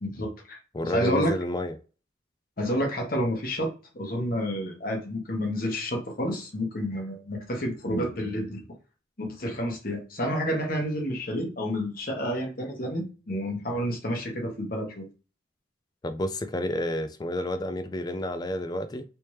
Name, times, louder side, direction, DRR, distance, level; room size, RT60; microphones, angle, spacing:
voice 1, 0.0-1.4 2.6-8.6 9.2-15.0, equal, 45° left, 1.1 m, -30 dB
voice 2, 0.7-1.8 16.0-19.0, left 1 dB, 20° left, 0.3 m, -30 dB
3.3 x 2.9 x 3.1 m
head